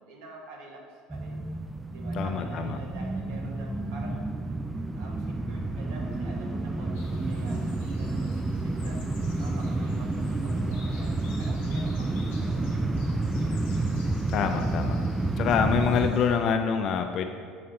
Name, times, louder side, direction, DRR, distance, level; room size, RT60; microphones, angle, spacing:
voice 1, 0.0-1.5 1.9-4.2 5.0-9.0 9.4-13.6, right 2 dB, 80° right, -1 dB, 1.1 m, -47 dB
sound 1, 1.1-16.1, right 2 dB, 15° right, 0.3 m, -30 dB
voice 2, 2.2-2.8 14.3-15.0 15.4-17.3, left 6 dB, 55° left, 6 dB, 0.4 m, -26 dB
sound 2, 6.9-16.4, left 4 dB, 85° left, 0.8 m, -52 dB
6.0 x 4.2 x 3.8 m, 2.1 s
supercardioid pair, 95°, 0 cm